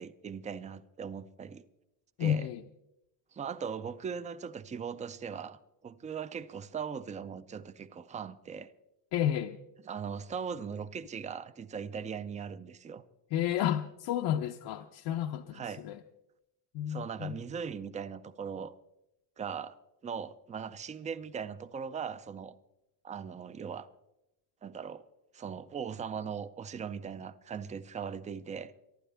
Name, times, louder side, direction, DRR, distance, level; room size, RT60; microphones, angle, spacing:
voice 1, 0.0-1.6 2.2-2.5 3.3-8.7 9.9-13.0 15.5-15.8 16.9-18.7 19.4-19.7 20.0-22.5 23.0-23.9 24.6-25.0 25.3-28.7, right 6 dB, 20° right, 0.4 m, -39 dB
voice 2, 2.2-2.6 9.1-9.6 13.3-16.0 16.7-17.3, left 10 dB, 65° left, 0.7 m, -31 dB
23.5 x 12.0 x 3.4 m
cardioid pair, 160°, 42 cm